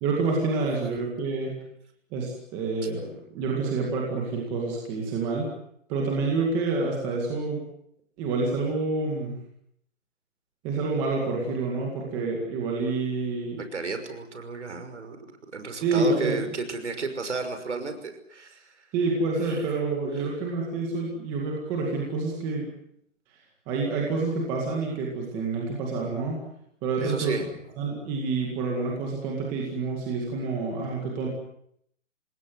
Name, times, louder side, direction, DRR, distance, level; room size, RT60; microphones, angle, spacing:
voice 1, 0.0-1.6 2.1-5.5 5.9-7.6 8.2-9.3 10.6-13.6 15.8-16.3 18.9-22.7 23.7-26.4 26.8-27.4 27.8-31.3, right 3 dB, 10° right, -1 dB, 2.0 m, -28 dB
voice 2, 13.6-15.3 15.5-18.7 19.4-19.7 27.0-27.5, right 4 dB, 60° right, 8 dB, 6.0 m, -33 dB
28.0 x 20.5 x 7.8 m, 0.72 s
hypercardioid pair, 180°, 38 cm